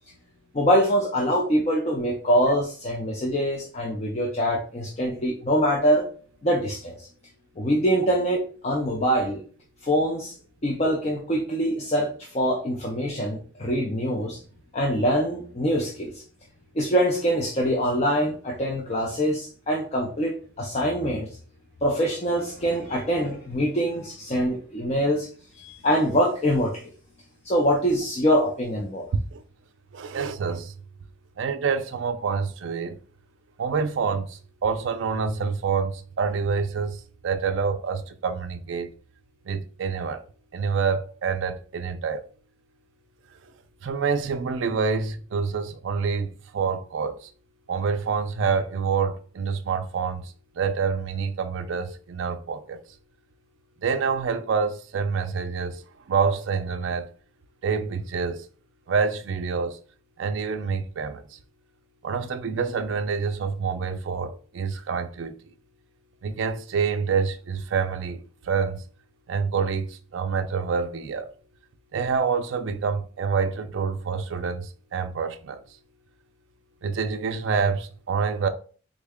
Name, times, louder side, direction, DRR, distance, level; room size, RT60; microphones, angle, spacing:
voice 1, 0.5-6.1 6.4-7.1 7.6-9.4 9.8-10.4 10.6-14.4 14.7-16.2 16.7-21.3 21.8-25.3 25.5-26.9 27.4-29.1, equal, 30° left, 0.4 m, -24 dB
voice 2, 29.9-30.7 31.4-32.9 33.6-37.0 37.2-38.9 39.5-40.2 40.5-42.2 43.8-47.3 47.7-52.8 53.8-55.8 56.1-57.1 57.6-58.4 58.9-59.8 60.2-61.2 62.0-65.3 66.2-68.8 69.3-71.3 71.9-75.6 76.8-78.5, right 5 dB, 60° right, 0.4 m, -27 dB
3.7 x 2.1 x 3.5 m
head